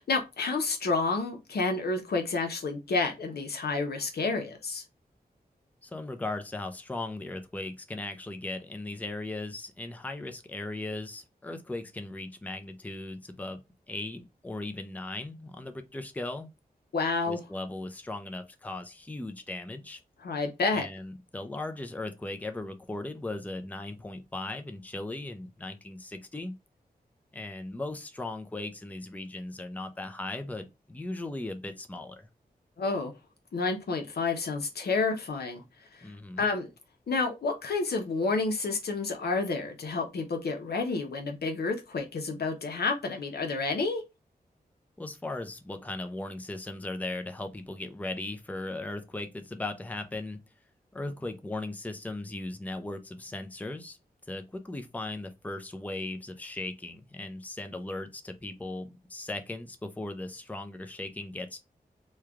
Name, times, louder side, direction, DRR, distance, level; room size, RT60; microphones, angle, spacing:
voice 1, 0.0-4.8 16.9-17.4 20.2-20.9 32.8-33.1 33.5-35.6 35.9-36.0 36.4-36.7 37.1-44.0, left 3 dB, 85° left, 0.8 m, -29 dB
voice 2, 5.8-13.6 13.9-16.5 17.3-20.0 20.7-26.5 27.3-32.3 36.0-36.4 45.0-50.4 50.9-54.0 54.3-61.6, left 2 dB, 10° left, 0.5 m, -38 dB
3.1 x 2.3 x 3.5 m
wide cardioid pair, 85°, 16 cm